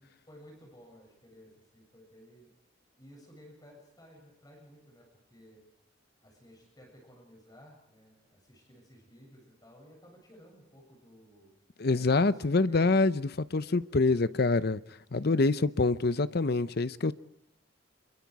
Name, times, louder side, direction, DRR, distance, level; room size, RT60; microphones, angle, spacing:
voice 1, 0.0-2.5 3.0-5.6 6.2-11.5 12.1-13.0 13.6-13.9 15.7-16.0 17.0-17.1, equal, 20° left, 7.4 m, -55 dB
voice 2, 11.8-14.8 15.1-17.1, left 3 dB, 55° left, 0.7 m, -26 dB
26.0 x 23.0 x 4.8 m
head